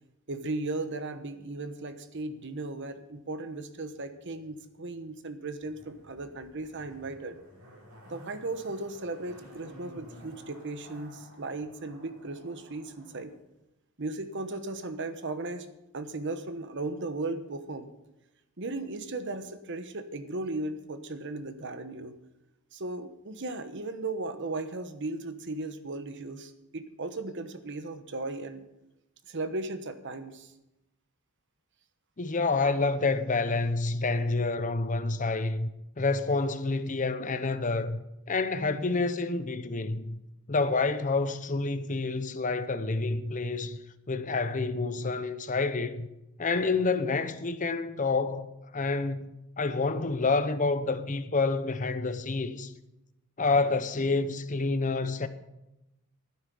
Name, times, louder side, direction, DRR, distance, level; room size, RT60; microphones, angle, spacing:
voice 1, 0.3-7.4 8.1-13.3 14.0-15.7 15.9-17.9 18.6-22.2 22.7-28.7 29.3-30.5, right 2 dB, 55° right, 1.1 m, -36 dB
Zipper (clothing), 5.6-13.2 13.5-13.6, equal, 75° right, 5.5 m, -52 dB
voice 2, 32.2-35.7 36.0-38.0 38.3-40.2 40.5-43.8 44.1-46.1 46.4-52.7 53.4-55.3, left 3 dB, 35° left, 0.8 m, -28 dB
11.5 x 9.8 x 7.0 m
head